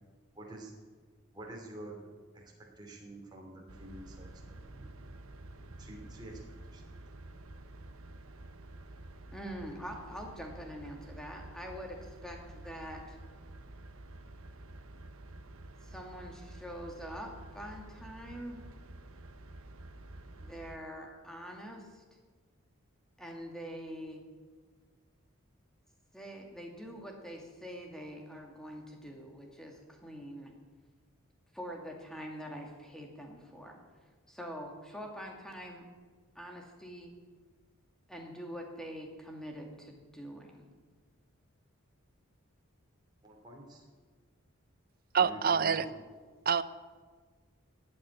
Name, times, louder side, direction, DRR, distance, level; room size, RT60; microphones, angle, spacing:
voice 1, 0.3-0.7 1.3-2.0 2.3-2.4 2.8-4.9 5.8-7.2 43.2-43.9 45.2-45.9, right 2 dB, 20° right, -2 dB, 2.7 m, -48 dB
sound 1, 3.7-20.8, right 2 dB, 75° right, 1.1 m, -50 dB
voice 2, 9.3-13.2 15.8-18.7 20.4-22.0 23.2-24.3 26.1-30.5 31.5-33.8 34.3-35.9 36.4-37.1 38.1-40.7, equal, 5° left, 1 dB, 2.1 m, -44 dB
voice 3, 45.1-45.9 46.5-46.6, right 6 dB, 40° right, 15 dB, 0.5 m, -26 dB
14.0 x 8.8 x 9.6 m, 1.5 s
head